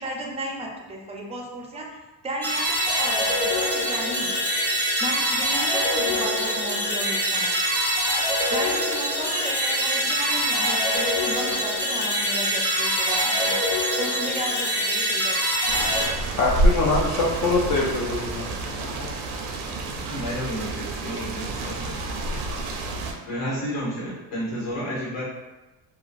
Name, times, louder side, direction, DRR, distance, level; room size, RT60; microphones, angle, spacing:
voice 1, 0.0-1.9 2.2-4.3 5.0-7.5 8.5-13.5 14.0-15.5, right 1 dB, 15° right, 0 dB, 0.4 m, -34 dB
sound 1, 2.4-16.1, equal, 5° left, 0.7 m, -24 dB
sound 2, 15.7-23.1, right 2 dB, 90° right, 0.5 m, -28 dB
voice 2, 16.3-19.1, left 3 dB, 45° left, -4 dB, 0.5 m, -24 dB
voice 3, 20.1-21.7 23.3-25.2, equal, 80° left, -6 dB, 1.4 m, -31 dB
2.9 x 2.3 x 2.4 m, 1.1 s
cardioid pair, 115°, 40 cm